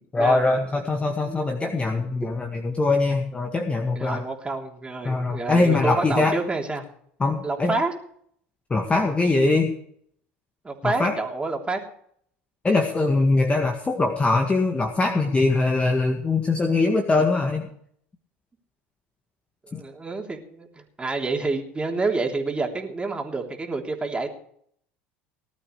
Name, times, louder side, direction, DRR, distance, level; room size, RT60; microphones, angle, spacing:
voice 1, 0.1-4.2 5.0-6.4 7.2-7.7 8.7-9.7 10.8-11.1 12.6-17.7 19.7-19.8, left 3 dB, 20° left, 3 dB, 1.9 m, -22 dB
voice 2, 3.9-6.9 7.4-7.9 10.6-11.8 19.7-20.7 21.0-24.3, right 3 dB, 20° right, 2 dB, 3.3 m, -28 dB
19.0 x 12.5 x 3.3 m, 0.64 s
hypercardioid pair, 75°, 6 cm